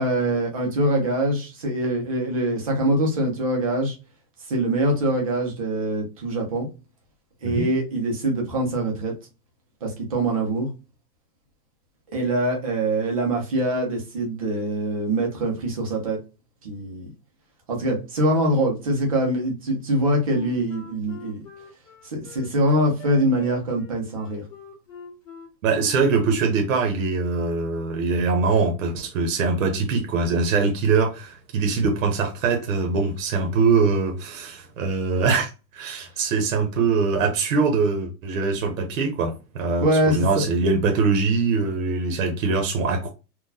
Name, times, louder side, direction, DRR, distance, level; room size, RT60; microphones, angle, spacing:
voice 1, 0.0-4.0 4.5-6.7 7.4-9.1 9.8-10.7 12.1-16.2 16.6-17.1 17.7-21.4 22.0-24.4 39.8-40.4, right 1 dB, 25° right, 0.5 m, -23 dB
Wind instrument woodwind instrument, 20.3-26.6, left 6 dB, 50° left, 1.6 m, -43 dB
voice 2, 25.6-43.1, right 4 dB, 55° right, 0.9 m, -23 dB
3.9 x 2.3 x 2.6 m
supercardioid pair, 170°, 48 cm